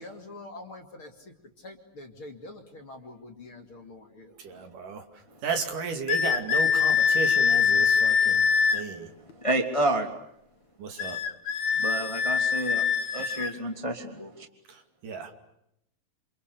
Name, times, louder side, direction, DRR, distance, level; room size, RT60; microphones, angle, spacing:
voice 1, 0.0-4.3, left 2 dB, 40° left, 4 dB, 3.3 m, -45 dB
voice 2, 4.4-5.0 5.4-8.4 8.7-9.1 10.8-11.2 15.0-15.3, right 5 dB, 65° right, 6 dB, 4.0 m, -33 dB
sound 1, 6.1-8.9 11.0-13.6, left 6 dB, 60° left, 2.6 m, -24 dB
voice 3, 9.4-10.1 11.8-12.9 13.1-14.5, right 1 dB, 10° left, 5 dB, 2.3 m, -29 dB
29.0 x 27.5 x 6.9 m, 0.79 s
omnidirectional pair, 4.1 m